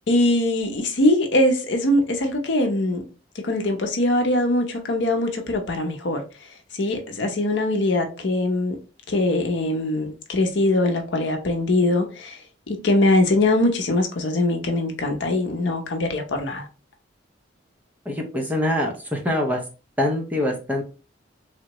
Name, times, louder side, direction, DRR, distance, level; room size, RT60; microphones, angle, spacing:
voice 1, 0.1-3.0 3.4-6.2 6.7-8.8 9.1-12.4 12.7-16.6, left 1 dB, 65° left, 0.6 m, -22 dB
voice 2, 18.1-19.6 20.0-20.8, left 1 dB, 10° right, 0.6 m, -24 dB
3.5 x 2.1 x 2.8 m
head